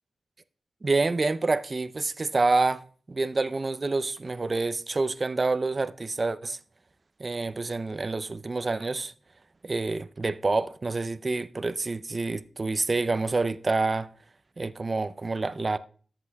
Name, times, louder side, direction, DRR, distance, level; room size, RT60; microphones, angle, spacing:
voice 1, 0.8-6.6 7.2-9.1 9.6-14.1 14.6-15.8, right 3 dB, 40° right, 0.6 m, -27 dB
13.5 x 7.8 x 2.3 m
cardioid pair, 65°, 0 cm